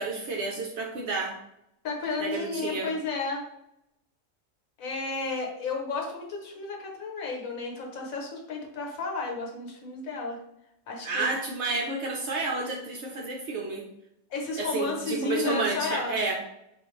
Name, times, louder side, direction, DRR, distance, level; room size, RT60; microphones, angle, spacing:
voice 1, 0.0-1.4 2.2-2.9 11.0-13.9 14.6-16.4, right 3 dB, 65° right, 0 dB, 0.7 m, -30 dB
voice 2, 1.8-3.4 4.8-10.4 10.9-11.3 14.3-16.2, left 3 dB, 70° left, 0 dB, 1.2 m, -32 dB
4.3 x 2.4 x 3.0 m, 0.82 s
omnidirectional pair, 1.5 m